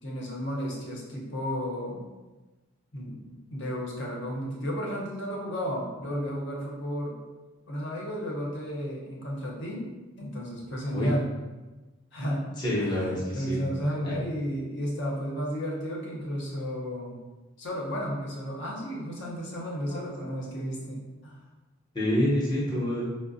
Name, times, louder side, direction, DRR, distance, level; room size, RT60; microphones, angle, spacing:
voice 1, 0.0-2.0 2.9-3.2 3.5-7.1 7.7-9.9 10.2-11.3 12.1-12.4 12.8-17.2 17.6-21.4, equal, 60° left, -3 dB, 0.7 m, -33 dB
voice 2, 12.6-13.6 14.0-14.2 19.9-20.0 21.9-23.1, equal, 20° left, -7 dB, 0.6 m, -27 dB
4.7 x 2.0 x 2.5 m, 1.2 s
head